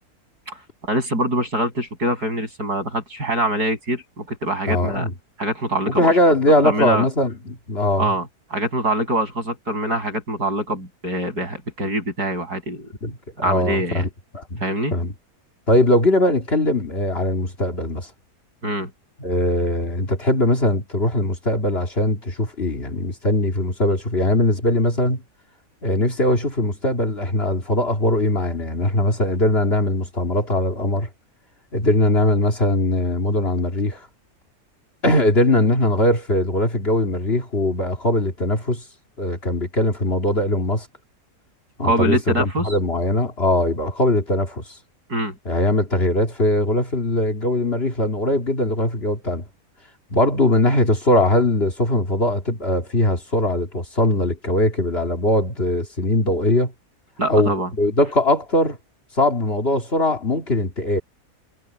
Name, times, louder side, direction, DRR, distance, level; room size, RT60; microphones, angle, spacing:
voice 1, 0.8-5.1 5.4-6.1 6.6-7.1 8.0-12.9 13.4-14.0 14.6-14.9 18.6-18.9 41.8-42.7 45.1-45.3 57.2-57.7, right 1 dB, 80° right, 7.5 m, -24 dB
voice 2, 4.7-5.1 5.9-8.1 13.0-14.6 14.9-15.1 15.7-18.1 19.2-25.2 25.8-31.1 31.7-34.0 35.0-38.8 39.2-40.9 41.8-44.8 45.4-49.4 50.1-56.7 57.3-58.8 59.2-61.0, left 1 dB, 40° left, 2.4 m, -20 dB
omnidirectional pair, 1.7 m